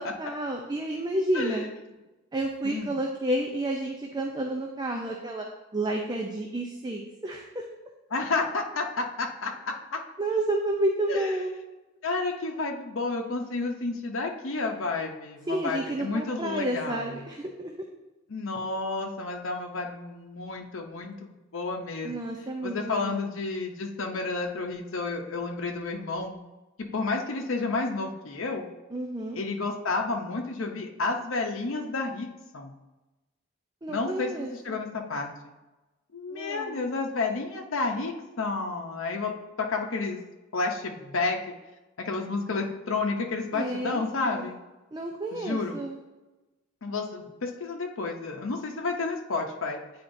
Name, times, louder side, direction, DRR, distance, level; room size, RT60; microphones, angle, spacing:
voice 1, 0.0-1.7 2.3-5.5 5.7-7.6 10.2-11.5 15.5-17.7 22.0-23.3 28.9-29.4 33.8-34.8 36.3-36.9 43.5-44.5 44.9-46.0, right 1 dB, 20° right, 1 dB, 0.5 m, -31 dB
voice 2, 8.1-10.0 11.1-11.3 12.0-17.1 18.3-22.3 22.6-26.4 26.8-28.7 29.3-32.3 32.5-32.7 33.9-35.3 36.1-39.3 39.6-40.2 40.5-41.4 42.0-44.6 45.3-45.8 46.8-49.8, left 3 dB, 85° left, 1 dB, 0.7 m, -31 dB
9.5 x 4.3 x 2.6 m, 1.1 s
head